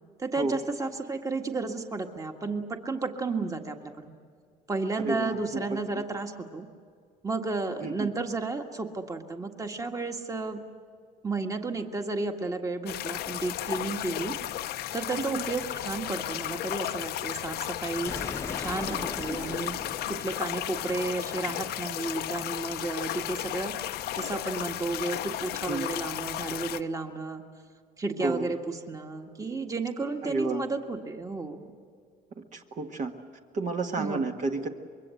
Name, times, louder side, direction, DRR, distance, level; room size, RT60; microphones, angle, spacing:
voice 1, 0.2-4.1 4.7-6.7 7.2-10.6 11.2-14.3 14.9-18.1 18.6-19.8 20.1-23.7 24.2-27.4 28.0-31.6 34.0-34.3, right 3 dB, 20° right, 4 dB, 1.7 m, -32 dB
voice 2, 5.0-5.6 5.9-6.0 7.8-8.1 15.2-15.4 19.3-19.4 25.7-25.9 28.2-28.5 30.2-30.6 32.5-33.1 33.5-34.7, right 3 dB, 45° right, 3 dB, 1.6 m, -31 dB
sound 1, 12.9-26.8, left 13 dB, 75° left, 0.7 m, -34 dB
Explosion, 18.1-21.0, left 3 dB, 15° left, 1.0 m, -39 dB
25.5 x 22.5 x 7.8 m, 2.1 s
cardioid pair, 110°, 17 cm